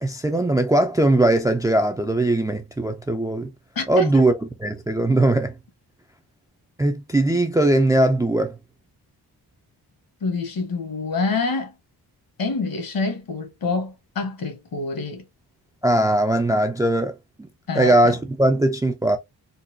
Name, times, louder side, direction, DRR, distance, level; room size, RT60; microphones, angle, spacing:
voice 1, 0.0-3.5 3.9-4.3 4.6-5.5 6.8-8.6 15.8-17.5 17.7-19.2, right 1 dB, 10° right, 0.3 m, -20 dB
voice 2, 3.7-4.2 10.2-11.7 12.4-15.2 17.7-17.9, left 3 dB, 60° left, 1.2 m, -26 dB
4.0 x 2.2 x 2.6 m
wide cardioid pair, 135°, 39 cm